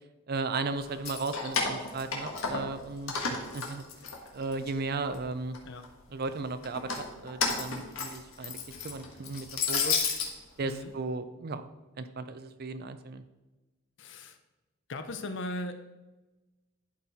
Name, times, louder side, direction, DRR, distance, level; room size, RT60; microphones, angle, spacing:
voice 1, 0.3-3.8 4.3-5.6 6.1-10.0 10.6-11.7 12.0-13.2, right 3 dB, 50° right, 11 dB, 0.5 m, -36 dB
Keys jangling, 0.9-2.8 3.1-4.7 5.1-5.9 6.6-10.3, left 5 dB, 85° left, 1.5 m, -32 dB
voice 2, 10.6-10.9 14.0-14.4 14.9-15.8, left 1 dB, 60° left, 9 dB, 0.7 m, -38 dB
11.5 x 4.5 x 4.2 m, 1.1 s
head